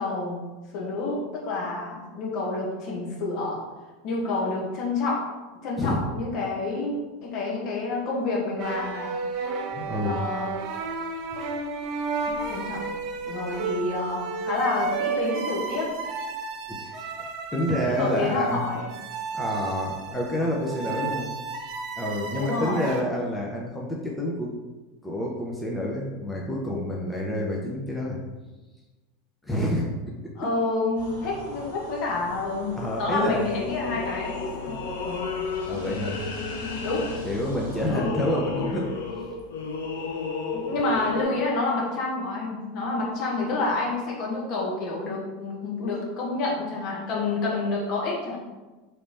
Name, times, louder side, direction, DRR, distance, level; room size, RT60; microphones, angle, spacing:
voice 1, 0.0-3.6 4.0-5.2 5.6-9.2 10.0-10.6 12.2-12.9 13.2-15.9 18.0-18.9 22.3-22.9 30.4-35.3 36.8-37.1 37.9-38.2 40.5-48.4, left 3 dB, 50° left, -3 dB, 1.3 m, -29 dB
sound 1, 8.6-23.0, right 4 dB, 50° right, 0.5 m, -32 dB
voice 2, 9.7-10.2 16.7-18.7 19.3-21.3 22.0-24.5 25.0-28.2 29.4-29.9 32.7-33.5 34.7-34.8 35.7-36.2 37.2-38.9, left 1 dB, 10° left, -3 dB, 0.8 m, -28 dB
sound 2, 30.9-37.9, left 1 dB, 90° left, 1.3 m, -40 dB
sound 3, 33.3-41.2, left 4 dB, 70° left, 0.6 m, -33 dB
3.3 x 3.0 x 4.1 m, 1.2 s
hypercardioid pair, 85°, 0 cm